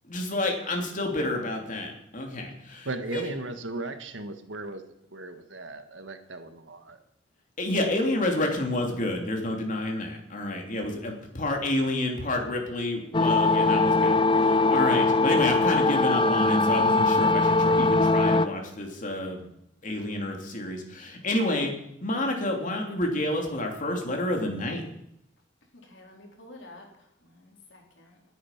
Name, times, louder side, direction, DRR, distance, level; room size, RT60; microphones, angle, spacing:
voice 1, 0.1-3.2 7.6-19.4 19.8-21.7 22.0-24.8, left 1 dB, 45° left, 2 dB, 3.1 m, -29 dB
voice 2, 2.8-4.8 5.1-7.0, right 2 dB, 80° right, 8 dB, 1.6 m, -36 dB
sound 1, 13.1-18.5, left 3 dB, 25° left, 0.5 m, -21 dB
voice 3, 25.7-28.2, left 2 dB, 75° left, 1 dB, 3.9 m, -50 dB
19.0 x 9.2 x 5.9 m, 0.78 s
head